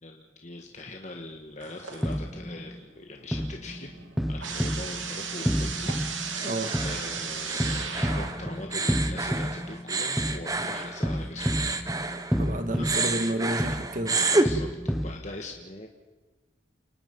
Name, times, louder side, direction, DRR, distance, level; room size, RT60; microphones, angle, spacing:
voice 1, 0.0-3.9 4.3-6.5 6.8-11.5 12.8-13.0 13.5-13.7 14.4-15.9, left 2 dB, 35° left, 2 dB, 1.5 m, -42 dB
sound 1, 1.6-2.4 2.8-8.6, right 6 dB, 85° right, 2.8 m, -36 dB
sound 2, 2.0-2.8 3.3-15.2, equal, ahead, 0.8 m, -31 dB
sound 3, 6.4-12.5 12.8-14.5, right 3 dB, 20° right, 1.2 m, -29 dB
voice 2, 6.4-6.7 12.4-14.2, right 1 dB, 40° right, 8 dB, 1.9 m, -30 dB
29.5 x 19.0 x 5.4 m, 1.2 s
head